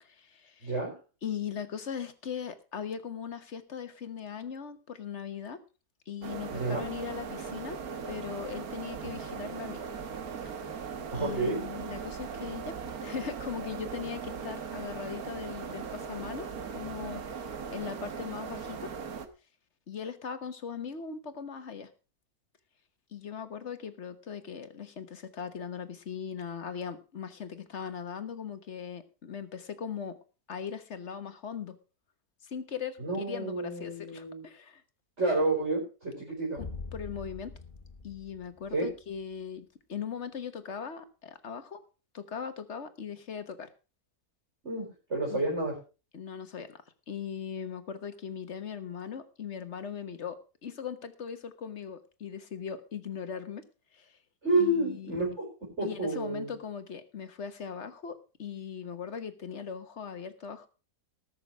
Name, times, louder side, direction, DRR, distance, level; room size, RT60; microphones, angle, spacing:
voice 1, 0.0-0.7 1.2-5.6 6.1-9.8 11.1-16.5 16.7-17.2 17.7-18.9 19.9-21.9 23.1-30.2 30.5-31.8 32.4-34.8 36.6-36.7 36.9-37.5 38.0-41.8 42.1-43.7 45.3-45.4 46.1-46.8 47.1-53.6 53.9-54.1 54.6-55.2 55.8-60.7, left 7 dB, 50° left, 10 dB, 1.5 m, -39 dB
voice 2, 0.6-0.9 6.5-6.8 11.1-11.6 33.0-34.4 35.2-36.6 38.7-38.9 44.6-45.8 54.4-55.4 55.8-56.5, right 2 dB, 45° right, -3 dB, 4.9 m, -30 dB
sound 1, 6.2-19.3, right 6 dB, 75° right, 1.7 m, -39 dB
sound 2, 36.6-39.2, left 4 dB, 35° left, 2.2 m, -43 dB
19.0 x 6.5 x 4.6 m, 0.33 s
omnidirectional pair, 1.6 m